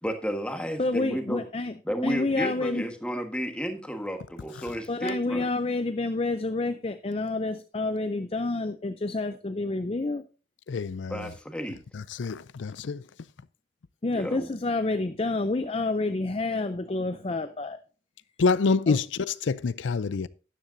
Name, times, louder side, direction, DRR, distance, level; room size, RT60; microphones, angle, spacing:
voice 1, 0.0-1.4 1.8-5.5 11.1-11.8 14.1-14.5, equal, 5° left, 1.4 m, -32 dB
voice 2, 0.8-1.7 2.0-2.8 4.9-10.2 14.0-17.8 18.9-19.0, left 2 dB, 30° left, 0.5 m, -28 dB
voice 3, 10.7-11.3 11.9-13.0 18.4-20.3, left 4 dB, 85° left, 0.5 m, -27 dB
12.5 x 10.0 x 2.7 m
head